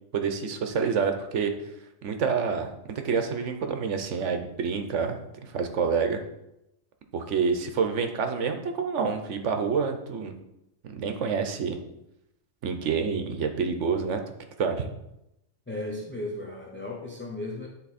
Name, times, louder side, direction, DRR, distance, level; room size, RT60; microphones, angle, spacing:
voice 1, 0.1-1.5 2.0-6.2 7.1-10.3 10.9-11.8 12.6-14.2 14.6-14.9, right 5 dB, 80° right, 6 dB, 1.2 m, -28 dB
voice 2, 15.7-17.7, left 2 dB, 10° left, -1 dB, 0.7 m, -35 dB
9.8 x 3.9 x 4.2 m, 0.86 s
omnidirectional pair, 1.2 m